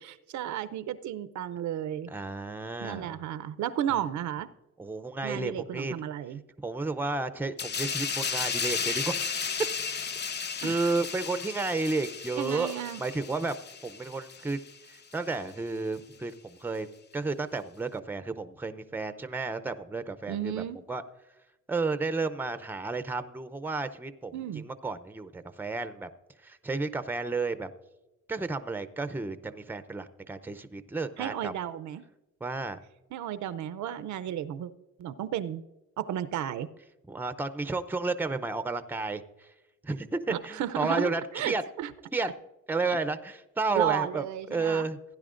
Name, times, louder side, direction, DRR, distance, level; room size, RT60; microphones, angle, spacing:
voice 1, 0.0-2.1 2.8-4.5 5.2-6.4 10.6-10.8 12.4-13.0 20.3-20.8 24.3-24.6 31.2-32.0 33.1-34.7 35.0-35.6 36.0-36.7 40.3-41.9 43.7-44.9, right 11 dB, 70° right, 13 dB, 0.6 m, -33 dB
voice 2, 2.1-3.2 3.9-4.0 4.8-5.9 6.6-9.2 10.6-13.5 13.8-14.6 14.9-16.9 17.1-21.0 21.7-26.1 26.4-27.7 28.3-31.5 32.4-32.8 37.1-39.5 39.8-41.6 42.1-42.3 42.7-44.2 44.5-45.0, right 3 dB, 5° right, 11 dB, 0.6 m, -32 dB
sound 1, 7.6-14.8 15.1-15.3, left 6 dB, 35° left, 0.6 m, -34 dB
16.0 x 10.0 x 2.5 m, 1.0 s
cardioid pair, 90°, 30 cm